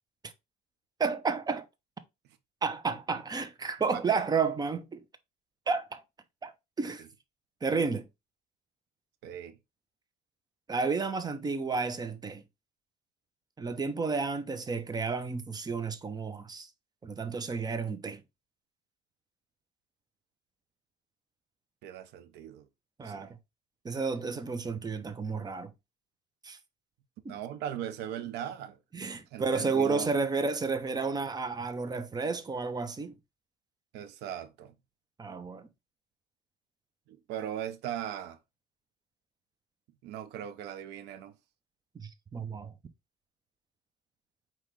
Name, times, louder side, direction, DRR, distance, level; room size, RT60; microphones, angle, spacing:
voice 1, 1.0-1.7 2.6-5.0 5.7-6.0 6.4-6.5 6.8-7.1 7.6-8.1 10.7-12.4 13.6-16.7 17.0-18.2 23.0-23.4 23.8-25.7 26.4-26.6 27.2-27.3 28.9-33.1 35.2-35.7 41.9-42.7, right 4 dB, 25° right, 0.7 m, -31 dB
voice 2, 3.9-4.2 7.0-7.1 9.2-9.6 21.8-22.7 23.0-23.3 27.3-28.8 29.3-30.1 33.9-34.7 37.1-38.4 40.0-41.3, right 10 dB, 85° right, 0.7 m, -39 dB
4.7 x 3.0 x 3.6 m
cardioid pair, 110°, 17 cm